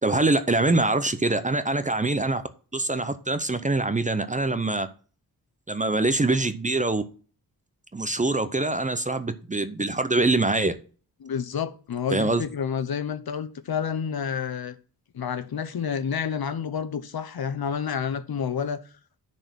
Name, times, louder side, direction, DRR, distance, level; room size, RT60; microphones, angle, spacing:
voice 1, 0.0-2.4 2.7-4.9 5.7-7.0 7.9-10.8 12.1-12.4, right 2 dB, 20° right, 0.6 m, -24 dB
voice 2, 11.2-14.8 15.1-18.8, left 7 dB, 65° left, 0.9 m, -29 dB
10.0 x 4.4 x 6.2 m
wide cardioid pair, 145°, 40 cm